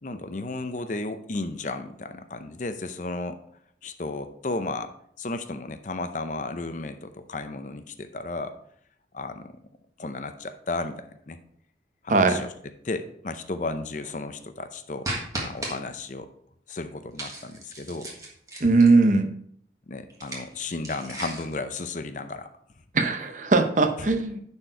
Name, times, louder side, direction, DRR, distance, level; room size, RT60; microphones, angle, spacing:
voice 1, 0.0-3.4 3.8-4.9 5.2-8.5 9.1-9.5 10.0-11.4 12.0-12.5 12.8-15.1 15.3-16.3 16.7-18.1 19.9-22.5 24.0-24.2, left 3 dB, 45° left, 9 dB, 0.6 m, -34 dB
voice 2, 12.1-12.4 18.6-19.3 22.9-24.4, right 3 dB, 45° right, 7 dB, 0.7 m, -20 dB
sound 1, 15.0-15.7 17.2-19.0 20.1-21.6, right 1 dB, 20° right, 1.6 m, -35 dB
10.0 x 4.4 x 4.5 m, 0.66 s
head